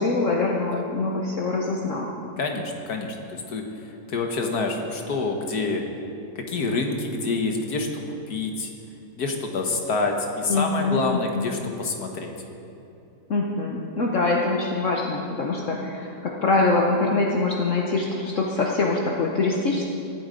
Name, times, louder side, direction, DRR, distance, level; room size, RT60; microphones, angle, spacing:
voice 1, 0.0-2.1 10.5-11.5 13.3-19.8, left 3 dB, 55° left, -1 dB, 1.4 m, -24 dB
voice 2, 2.4-5.8 6.4-8.7 9.2-12.3, left 3 dB, 75° left, 3 dB, 1.8 m, -27 dB
17.5 x 11.0 x 5.2 m, 2.8 s
omnidirectional pair, 1.7 m